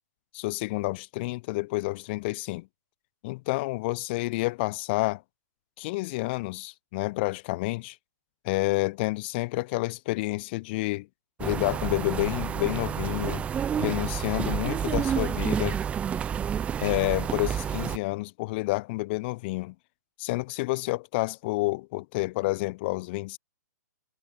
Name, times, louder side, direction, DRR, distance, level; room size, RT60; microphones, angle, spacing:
voice 1, 0.3-2.7 3.2-5.2 5.8-8.0 8.4-11.1 11.4-13.4 13.8-15.8 16.8-19.7 20.2-23.4, left 22 dB, 35° left, 0.6 m, -29 dB
sound 1, 11.4-18.0, right 8 dB, 10° right, 0.4 m, -29 dB
figure-of-eight pair, 120°, 10 cm